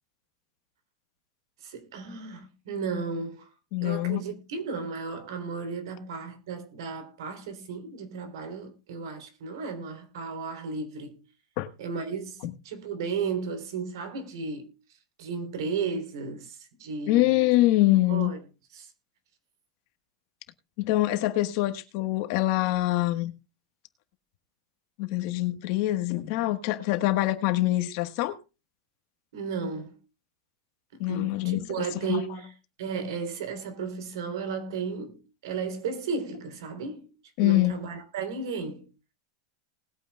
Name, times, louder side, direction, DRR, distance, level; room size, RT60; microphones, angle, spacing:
voice 1, 1.6-3.5 3.8-11.2 11.8-14.8 15.2-17.3 18.1-18.4 18.7-18.9 29.3-30.0 30.9-37.1 37.4-38.9, right 5 dB, 75° right, 3.4 m, -34 dB
voice 2, 3.7-4.2 11.6-11.7 12.4-12.5 17.1-18.3 20.8-23.3 25.0-28.4 31.0-32.2 37.4-37.7, left 17 dB, 45° left, 1.3 m, -25 dB
19.5 x 9.0 x 2.3 m
supercardioid pair, 170°, 2 cm